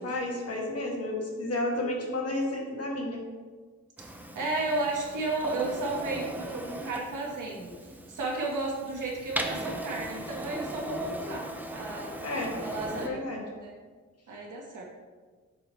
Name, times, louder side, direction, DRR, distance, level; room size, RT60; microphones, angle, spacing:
voice 1, 0.0-3.2 12.2-12.6 12.9-13.4, left 1 dB, 55° left, -1 dB, 1.9 m, -32 dB
Printer, 4.0-13.1, right 1 dB, 5° right, 0.7 m, -38 dB
voice 2, 4.3-7.7 8.1-12.1 12.6-13.2 13.6-13.8 14.3-14.8, right 2 dB, 85° right, -2 dB, 2.0 m, -33 dB
7.6 x 7.5 x 3.4 m, 1.4 s
wide cardioid pair, 130°, 30 cm